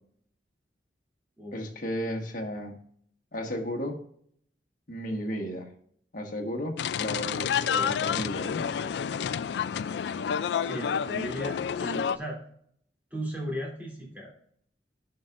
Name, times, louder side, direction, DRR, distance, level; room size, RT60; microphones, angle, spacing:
voice 1, 1.5-2.8 3.3-4.0 4.9-5.7 6.1-8.6, equal, 50° left, 2 dB, 1.4 m, -34 dB
sound 1, 6.8-12.2, left 7 dB, 70° left, 0.3 m, -29 dB
voice 2, 10.6-12.4 13.1-14.3, right 1 dB, 10° right, -3 dB, 3.0 m, -36 dB
11.5 x 5.6 x 2.5 m, 0.63 s
head